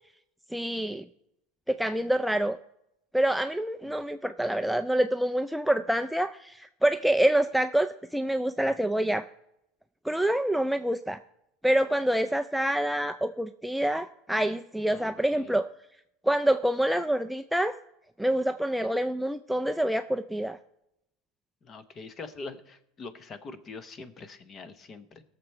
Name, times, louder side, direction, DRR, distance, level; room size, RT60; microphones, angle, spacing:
voice 1, 0.5-1.1 1.7-2.6 3.1-9.3 10.0-11.2 11.6-15.7 16.2-17.8 18.2-20.6, right 1 dB, ahead, 8 dB, 0.3 m, -26 dB
voice 2, 14.9-15.5 21.6-25.2, left 3 dB, 30° left, 12 dB, 0.8 m, -44 dB
18.0 x 6.8 x 4.4 m, 0.82 s
supercardioid pair, 140°, 0 cm